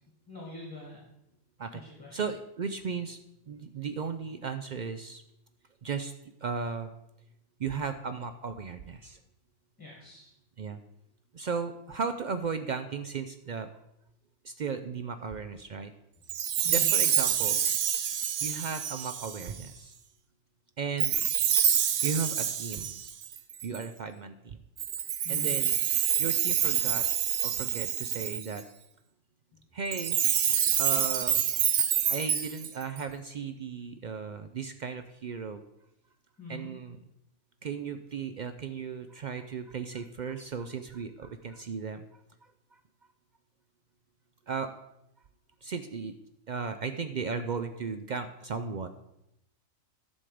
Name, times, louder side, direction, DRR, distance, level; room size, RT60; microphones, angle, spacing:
voice 1, 0.3-1.0 2.0-2.2 9.8-10.3 16.6-16.9 25.2-25.5 36.4-36.7, left 3 dB, 15° left, -4 dB, 2.1 m, -43 dB
voice 2, 2.1-3.2 3.5-5.2 5.8-6.1 6.4-6.9 7.6-9.2 10.6-10.8 11.3-13.7 14.4-15.9 16.6-17.6 18.4-19.9 20.8-21.2 22.0-23.0 23.6-24.6 25.3-25.8 26.2-27.1 27.4-28.6 29.7-30.2 30.8-31.4 32.1-35.6 36.5-37.0 37.6-42.1 42.7-42.8 44.5-44.7 45.6-46.2 46.5-48.9, right 5 dB, 75° right, 9 dB, 0.4 m, -35 dB
Chime, 16.3-19.6 21.0-23.8 24.8-28.6 29.9-33.0, right 9 dB, 90° right, 1.2 m, -27 dB
11.0 x 6.4 x 4.9 m, 0.85 s
omnidirectional pair, 1.4 m